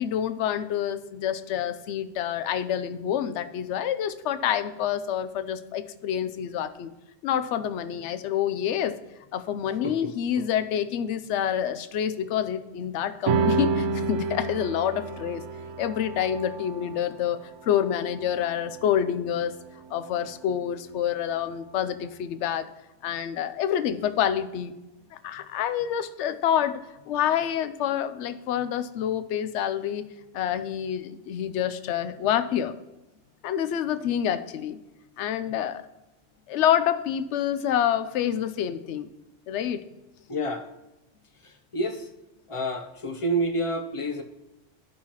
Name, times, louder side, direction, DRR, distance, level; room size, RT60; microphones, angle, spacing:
voice 1, 0.0-6.9 7.2-9.0 9.3-15.4 15.8-19.5 19.9-22.7 23.0-24.7 25.1-30.0 30.3-32.7 33.4-34.8 35.2-35.8 36.5-39.1 39.5-39.8, left 9 dB, 75° left, 12 dB, 0.9 m, -27 dB
voice 2, 9.8-10.4 40.3-40.7 41.4-42.1 42.5-44.2, right 1 dB, 35° left, 6 dB, 0.6 m, -29 dB
sound 1, 13.3-20.0, right 4 dB, 80° right, 0.9 m, -30 dB
12.5 x 5.6 x 2.9 m, 0.98 s
omnidirectional pair, 1.2 m